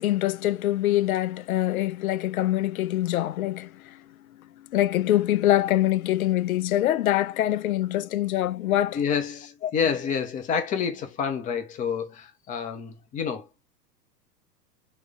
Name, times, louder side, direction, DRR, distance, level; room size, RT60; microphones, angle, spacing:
voice 1, 0.0-4.0 4.7-9.0 9.6-9.7, left 14 dB, 60° left, 0.5 m, -24 dB
voice 2, 8.9-13.5, left 6 dB, 15° left, 0.6 m, -28 dB
4.0 x 2.3 x 3.9 m
figure-of-eight pair, 100°, 49 cm